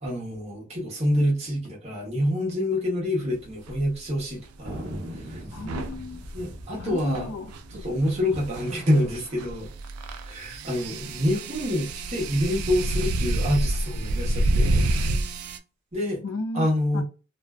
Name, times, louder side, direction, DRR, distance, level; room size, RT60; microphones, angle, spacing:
voice 1, 0.0-5.4 6.3-7.3 7.7-9.7 10.2-14.8 15.9-16.2 16.5-17.0, left 1 dB, 30° right, 0.8 m, -27 dB
sound 1, 3.6-3.8 5.6-15.6, right 1 dB, 90° right, 0.3 m, -28 dB
Thunder, 4.6-9.5 9.7-9.8 10.0-10.6 11.1-12.3, equal, 65° right, 0.8 m, -41 dB
voice 2, 5.5-6.2 6.8-7.5 16.2-16.7 16.9-17.0, left 2 dB, 75° left, 0.4 m, -34 dB
2.5 x 2.2 x 2.3 m
head